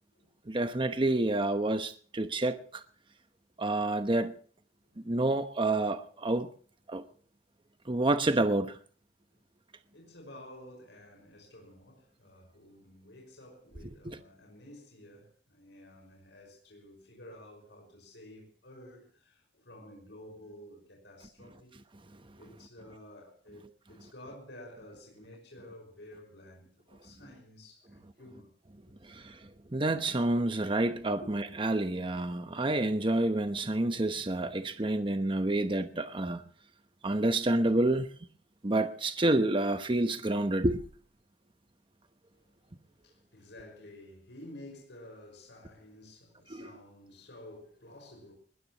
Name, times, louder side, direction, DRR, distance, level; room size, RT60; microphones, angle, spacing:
voice 1, 0.5-2.8 3.6-4.3 5.1-6.5 6.9-7.0 7.9-8.8 14.0-14.2 29.1-29.3 29.7-36.4 37.0-38.1 38.6-40.8 46.5-46.7, right 2 dB, 30° right, 1.0 m, -28 dB
voice 2, 9.9-21.7 22.4-28.5 29.0-29.2 31.1-31.3 42.4-42.5 43.0-48.3, left 1 dB, 85° left, 5.7 m, -51 dB
21.0 x 20.5 x 3.0 m
head